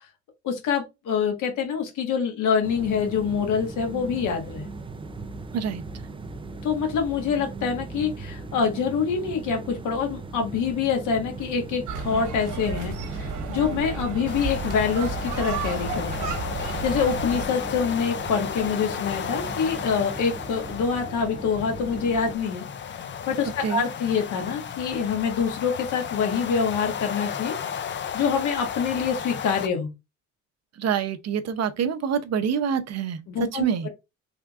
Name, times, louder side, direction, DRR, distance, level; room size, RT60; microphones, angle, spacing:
voice 1, 0.4-4.7 6.6-22.6 22.9-23.0 23.3-27.6 28.1-29.9 33.3-33.9, left 6 dB, 85° left, 1.4 m, -26 dB
sound 1, 2.6-22.4, right 3 dB, 15° right, 0.4 m, -38 dB
sound 2, 11.9-17.5, right 4 dB, 80° right, 1.1 m, -32 dB
sound 3, 14.3-29.7, left 8 dB, 40° left, 0.5 m, -34 dB
voice 2, 30.8-33.9, right 7 dB, 60° right, 0.6 m, -26 dB
3.6 x 3.5 x 2.4 m
cardioid pair, 90°, 30 cm